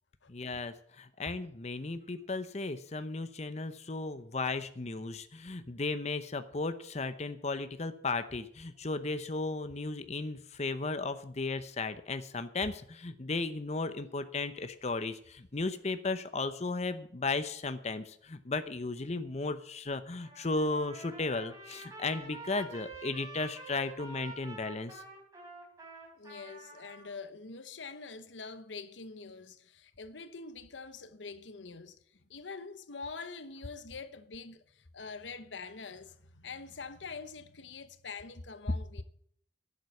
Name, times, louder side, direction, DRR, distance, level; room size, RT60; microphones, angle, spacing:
voice 1, 0.3-25.0, left 3 dB, 40° left, 0.8 m, -35 dB
Trumpet, 20.2-27.1, right 3 dB, 20° right, 4.3 m, -48 dB
voice 2, 26.1-32.0 32.3-39.0, left 4 dB, 90° left, 1.0 m, -45 dB
11.5 x 8.0 x 8.3 m
head